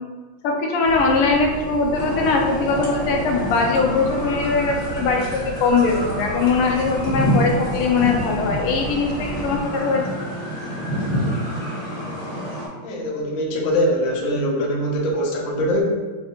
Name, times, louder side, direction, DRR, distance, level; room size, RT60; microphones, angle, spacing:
voice 1, 0.4-10.0, left 4 dB, 85° left, 1 dB, 1.6 m, -21 dB
sound 1, 0.8-9.6, right 3 dB, 75° right, 1.2 m, -34 dB
sound 2, 1.9-12.7, equal, 30° left, 0.7 m, -28 dB
voice 2, 12.8-15.8, equal, 65° left, -2 dB, 0.8 m, -22 dB
5.6 x 2.4 x 2.9 m, 1.3 s
omnidirectional pair, 2.4 m